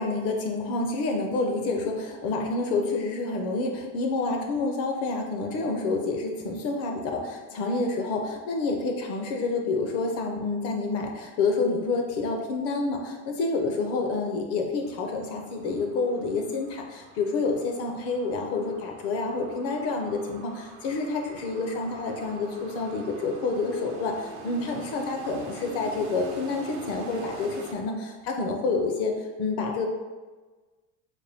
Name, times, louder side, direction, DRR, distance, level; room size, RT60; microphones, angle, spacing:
voice 1, 0.0-29.9, left 3 dB, 50° left, 3 dB, 0.6 m, -28 dB
sound 1, 14.8-27.7, right 3 dB, 70° right, 0.8 m, -44 dB
4.3 x 2.2 x 3.4 m, 1.3 s
cardioid pair, 155°, 32 cm